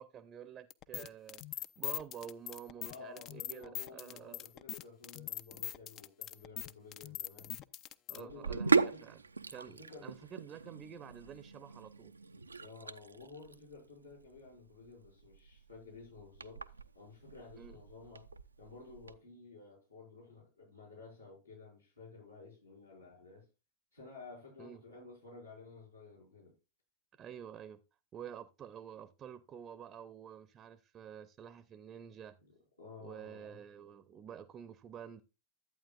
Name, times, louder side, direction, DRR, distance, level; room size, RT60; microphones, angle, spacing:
voice 1, 0.0-4.4 8.1-9.2 9.5-12.1 17.6-17.8 24.6-24.8 27.1-27.8 28.1-32.4 33.0-35.2, right 8 dB, 25° right, 0.6 m, -49 dB
sound 1, 0.7-8.2, left 12 dB, 35° left, 0.4 m, -42 dB
voice 2, 2.7-7.6 8.1-9.1 9.6-10.1 12.3-16.6 16.9-18.3 18.6-23.5 23.9-26.6 32.4-33.6, left 4 dB, 85° left, 6.0 m, -53 dB
Sink (filling or washing), 8.3-19.1, right 4 dB, 80° right, 0.4 m, -37 dB
11.5 x 8.9 x 2.4 m
figure-of-eight pair, 90°, 0 cm